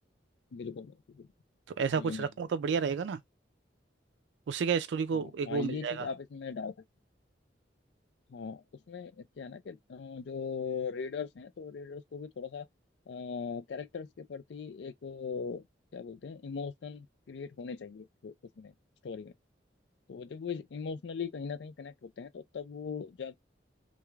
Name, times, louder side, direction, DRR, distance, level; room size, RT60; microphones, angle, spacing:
voice 1, 0.5-1.3 2.0-2.3 5.1-6.8 8.3-12.7 13.1-15.7 15.9-18.7 19.0-19.3 20.1-23.3, left 5 dB, 70° left, 0.4 m, -40 dB
voice 2, 1.8-3.2 4.5-6.1, right 6 dB, 75° right, 0.3 m, -31 dB
3.1 x 2.3 x 2.3 m
head